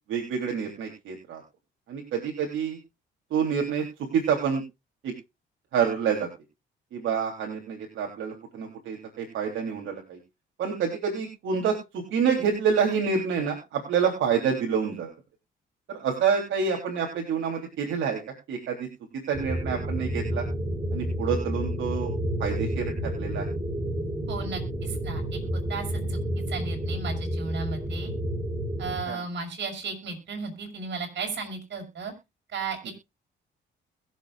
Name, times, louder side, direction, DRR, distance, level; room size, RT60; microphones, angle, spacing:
voice 1, 0.1-1.4 1.9-2.8 3.3-3.8 4.1-4.6 5.0-5.1 5.7-6.3 6.9-10.2 10.6-15.1 15.9-18.2 18.5-18.9 19.3-20.5 20.9-22.1 22.4-23.5 29.1-29.2 32.8-32.9, right 6 dB, 80° right, 1 dB, 3.4 m, -27 dB
sound 1, 19.3-29.0, equal, 20° right, 3.5 m, -30 dB
voice 2, 24.3-26.2 26.5-28.1 28.8-32.1 32.5-32.9, right 4 dB, 65° right, 2 dB, 5.9 m, -35 dB
21.5 x 7.8 x 2.5 m, 0.25 s
cardioid pair, 90°, 20 cm